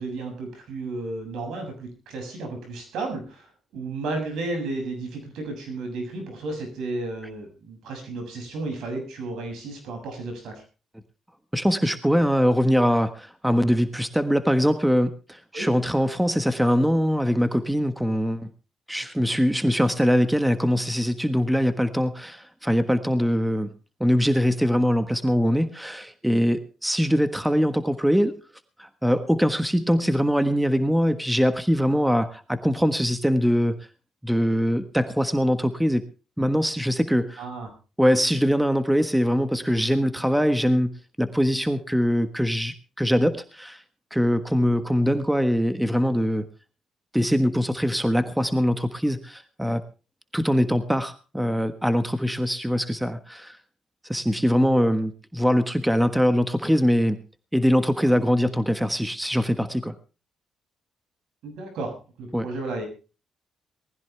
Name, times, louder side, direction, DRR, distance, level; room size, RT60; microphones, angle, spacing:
voice 1, 0.0-10.6 15.5-15.7 37.4-37.7 58.1-58.2 61.4-62.9, right 2 dB, 80° right, 4 dB, 6.9 m, -33 dB
voice 2, 11.5-18.4 18.9-23.7 24.0-28.4 28.8-33.8 34.2-36.0 36.4-37.4 38.0-40.9 41.2-43.8 44.1-46.4 47.1-49.8 50.3-53.6 54.1-57.2 57.5-59.9 62.3-62.5, equal, 5° right, 10 dB, 1.4 m, -22 dB
19.5 x 15.0 x 3.4 m, 0.34 s
cardioid pair, 90°, 0 cm